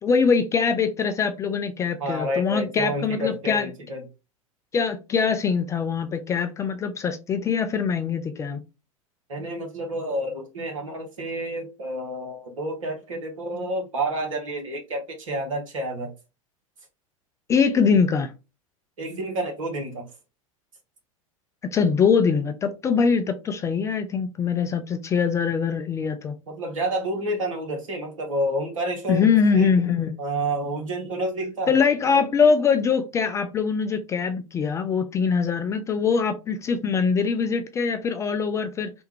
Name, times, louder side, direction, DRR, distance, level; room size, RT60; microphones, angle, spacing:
voice 1, 0.0-3.7 4.7-8.6 17.5-18.3 21.6-26.3 29.1-30.1 31.7-38.9, left 6 dB, 15° left, 0.3 m, -23 dB
voice 2, 2.0-4.1 9.3-16.1 19.0-20.1 26.5-29.2 29.5-29.7 30.2-31.7, right 1 dB, 65° right, 1.2 m, -29 dB
3.3 x 2.3 x 3.0 m
figure-of-eight pair, 90°, 18 cm